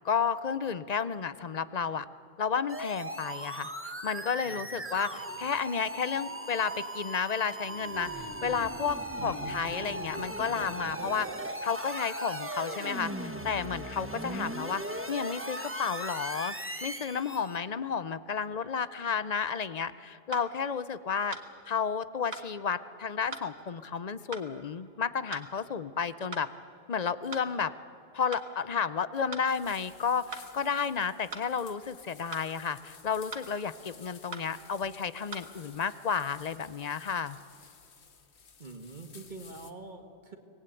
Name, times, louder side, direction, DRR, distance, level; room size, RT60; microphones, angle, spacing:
voice 1, 0.0-2.1 2.4-11.3 11.6-16.5 16.8-21.4 21.7-26.5 26.9-27.7 28.1-37.4, left 6 dB, 45° left, 15 dB, 0.6 m, -32 dB
sound 1, 2.7-17.6, right 1 dB, 10° right, 1.1 m, -38 dB
voice 2, 4.4-5.5 9.2-9.7 38.6-40.4, right 2 dB, 45° right, 5 dB, 1.5 m, -46 dB
sound 2, 20.3-20.5 21.3-21.5 22.3-22.5 23.3-23.5 24.3-24.5 25.3-25.5 26.3-26.5 27.3-27.5 28.3-28.5 29.3-29.5 30.3-30.5 31.3-31.5 32.3-32.5 33.3-33.5 34.3-34.5 35.3-35.4, right 3 dB, 75° right, 1.8 m, -40 dB
sound 3, 29.5-39.7, left 6 dB, 75° left, 1.5 m, -55 dB
24.5 x 18.5 x 9.1 m, 2.7 s
omnidirectional pair, 1.1 m